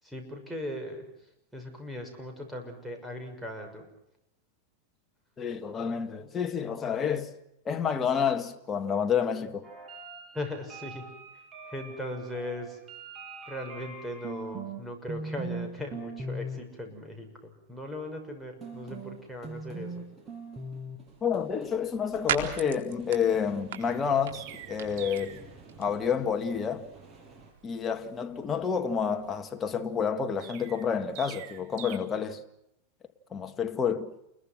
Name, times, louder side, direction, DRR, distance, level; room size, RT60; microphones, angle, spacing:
voice 1, 0.0-1.1 1.5-3.9 10.3-11.0 11.7-12.8 13.5-20.1, left 1 dB, 5° right, 6.3 m, -38 dB
voice 2, 5.4-7.3 7.6-9.7 21.2-25.4 25.8-26.9 27.6-32.4 33.3-34.1, left 7 dB, 20° left, 1.8 m, -29 dB
sound 1, 9.6-14.8 15.1-15.7 15.9-16.6 18.6-27.5, right 2 dB, 20° right, 6.2 m, -42 dB
sound 2, 21.1-29.7, right 9 dB, 85° right, 4.0 m, -41 dB
Chirp tweet, 23.7-25.5 30.4-32.0, right 12 dB, 55° right, 2.6 m, -45 dB
29.0 x 22.0 x 6.1 m
supercardioid pair, 140°, 0 cm